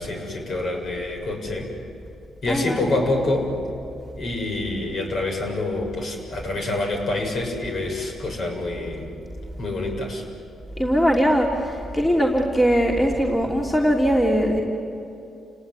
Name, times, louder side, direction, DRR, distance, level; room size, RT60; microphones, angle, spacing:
voice 1, 0.0-1.7 2.4-3.5 4.2-9.1 9.6-10.2, left 2 dB, 55° left, 2 dB, 7.1 m, -26 dB
voice 2, 2.5-2.9 10.8-14.6, equal, 15° left, -1 dB, 3.3 m, -20 dB
30.0 x 18.5 x 9.8 m, 2.8 s
cardioid pair, 90°, 0 cm